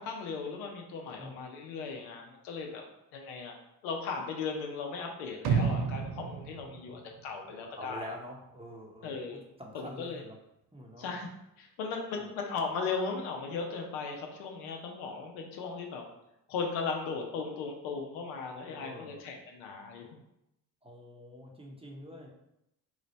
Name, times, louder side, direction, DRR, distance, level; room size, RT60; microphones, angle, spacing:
voice 1, 0.0-2.8 3.1-3.5 3.8-8.1 9.0-9.4 9.7-10.2 11.0-11.3 11.6-16.0 16.5-20.1, left 4 dB, 85° left, 2 dB, 0.6 m, -37 dB
sound 1, 5.4-7.6 8.0-8.1, right 5 dB, 55° right, 0.5 m, -31 dB
voice 2, 7.8-10.4 10.7-11.1 12.2-12.3 18.7-19.2 20.8-22.3, equal, 10° right, -1 dB, 0.8 m, -46 dB
3.1 x 2.0 x 4.0 m, 0.85 s
hypercardioid pair, 45°, 48 cm